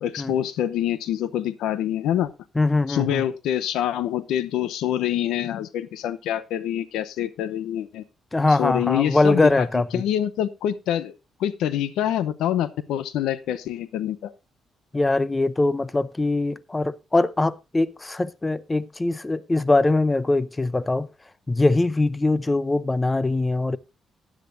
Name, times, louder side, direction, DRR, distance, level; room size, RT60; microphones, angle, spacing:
voice 1, 0.0-2.3 2.9-8.0 8.6-9.7 9.9-11.1 11.4-14.3, left 11 dB, 85° left, 0.8 m, -26 dB
voice 2, 2.6-3.2 8.3-10.0 14.9-21.1 21.5-23.8, left 2 dB, 20° left, 0.7 m, -22 dB
15.5 x 10.0 x 2.6 m
cardioid pair, 90°, 0 cm